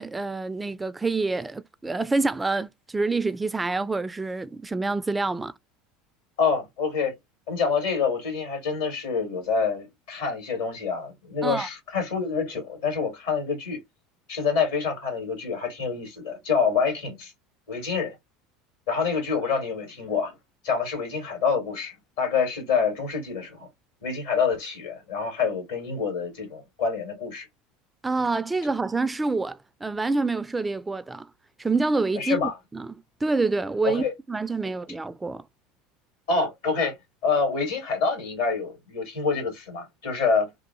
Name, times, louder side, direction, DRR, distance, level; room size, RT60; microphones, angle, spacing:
voice 1, 0.0-5.5 11.4-11.7 28.0-31.3 31.6-35.5, right 3 dB, 15° right, 0.3 m, -27 dB
voice 2, 6.4-7.1 7.5-13.8 14.3-17.3 17.7-18.2 18.9-20.4 20.6-23.7 24.0-27.5 32.2-32.5 33.8-34.1 36.3-37.0 37.2-40.5, left 5 dB, 75° left, 2.3 m, -27 dB
3.5 x 2.4 x 2.6 m
hypercardioid pair, 80°, 0 cm